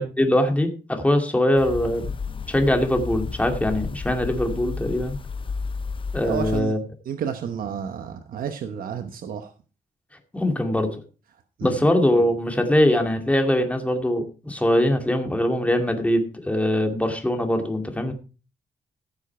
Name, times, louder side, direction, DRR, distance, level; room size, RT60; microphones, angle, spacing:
voice 1, 0.0-2.1 2.5-5.2 6.1-6.8 10.3-10.9 11.6-18.1, left 1 dB, 10° left, 5 dB, 2.3 m, -22 dB
sound 1, 1.6-6.6, left 5 dB, 35° left, 0.7 m, -32 dB
voice 2, 6.2-6.8 7.1-9.5 11.6-11.8, right 8 dB, 90° right, 8 dB, 1.0 m, -31 dB
15.0 x 7.1 x 4.3 m, 0.34 s
cardioid pair, 105°, 14 cm